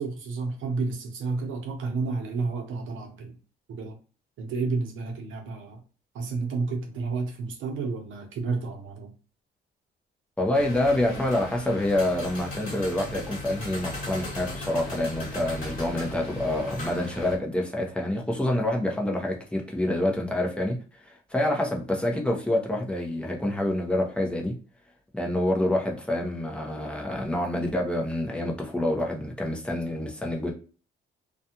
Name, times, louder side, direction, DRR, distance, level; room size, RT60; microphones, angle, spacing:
voice 1, 0.0-3.4 3.7-4.0 4.4-5.8 6.1-9.1, right 4 dB, 80° right, 0.8 m, -31 dB
voice 2, 10.4-24.6 25.1-30.5, left 1 dB, 5° left, 0.8 m, -27 dB
sound 1, 10.5-17.4, left 1 dB, 45° left, 1.3 m, -37 dB
2.5 x 2.3 x 2.8 m
cardioid pair, 90°, 20 cm